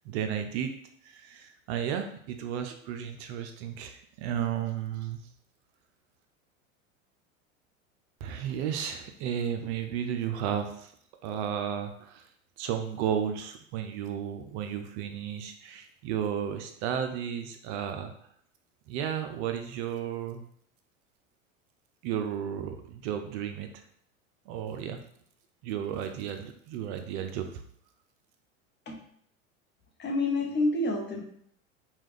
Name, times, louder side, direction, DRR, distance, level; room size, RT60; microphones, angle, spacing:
voice 1, 0.1-0.7 1.0-5.2 8.2-10.9 11.2-12.3 12.6-18.1 18.9-20.4 22.0-23.8 24.5-25.0 25.6-27.6, right 9 dB, 55° right, 6 dB, 0.5 m, -33 dB
voice 2, 30.0-31.2, left 2 dB, 25° left, 1 dB, 0.8 m, -28 dB
3.0 x 2.3 x 3.5 m, 0.65 s
hypercardioid pair, 85°, 40 cm